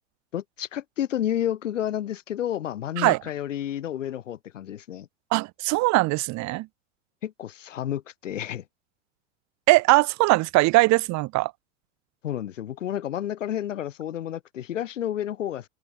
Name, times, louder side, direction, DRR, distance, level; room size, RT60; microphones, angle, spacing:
voice 1, 0.3-5.1 7.2-8.6 12.2-15.7, left 11 dB, 75° left, 5.1 m, -30 dB
voice 2, 5.3-6.7 9.7-11.5, right 22 dB, 45° right, 2.6 m, -21 dB
open air
hypercardioid pair, 95°, 37 cm